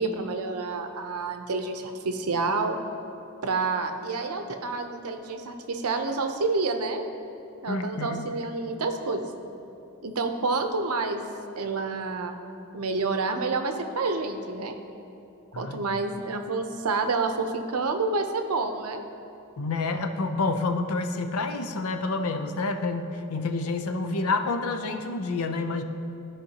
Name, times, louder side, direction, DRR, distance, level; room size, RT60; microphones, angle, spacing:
voice 1, 0.0-2.8 3.4-7.1 7.6-9.3 10.0-11.2 11.6-12.3 12.7-14.7 15.6-19.0, right 3 dB, 85° right, 6 dB, 0.7 m, -28 dB
voice 2, 7.7-8.3 15.5-15.8 19.6-25.8, left 3 dB, 80° left, 7 dB, 0.6 m, -28 dB
14.5 x 5.1 x 2.9 m, 2.8 s
head